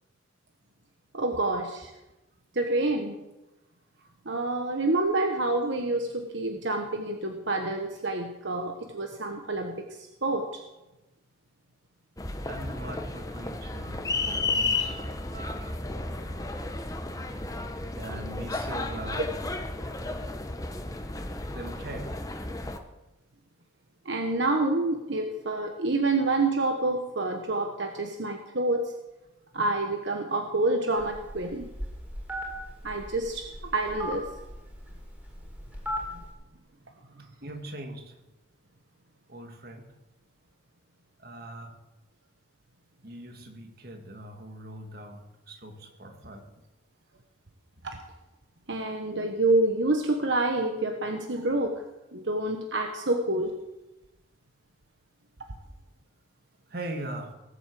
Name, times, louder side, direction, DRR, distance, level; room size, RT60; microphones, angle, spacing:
voice 1, 1.1-1.9 2.5-3.1 4.2-10.6 19.8-20.3 24.0-28.9 29.5-31.7 32.8-34.3 47.8-48.0 48.7-51.8 52.1-53.5, right 2 dB, 70° right, 4 dB, 1.2 m, -28 dB
sound 1, 12.2-22.8, left 3 dB, 20° left, 1.0 m, -33 dB
voice 2, 12.5-16.9 17.9-19.3 21.5-22.1 37.4-38.2 39.3-39.9 41.2-41.8 43.0-46.5 56.7-57.3, right 1 dB, 50° right, 5 dB, 2.0 m, -41 dB
Telephone, 31.0-36.3, equal, 10° right, 3.8 m, -38 dB
19.0 x 8.1 x 7.6 m, 1.0 s
head